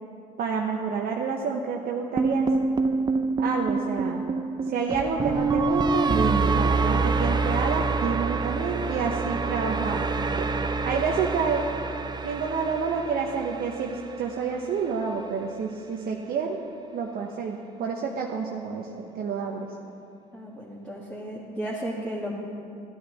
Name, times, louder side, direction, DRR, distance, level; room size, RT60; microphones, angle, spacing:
voice 1, 0.4-2.5 3.4-4.3 4.7-10.5 10.8-11.6 12.2-16.6 16.9-19.7, right 5 dB, 50° right, 0 dB, 0.8 m, -29 dB
sound 1, 2.2-14.4, right 4 dB, 20° right, 0.6 m, -26 dB
voice 2, 20.3-22.3, right 1 dB, 5° left, -7 dB, 1.9 m, -34 dB
14.0 x 9.1 x 3.2 m, 2.4 s
hypercardioid pair, 65°, 19 cm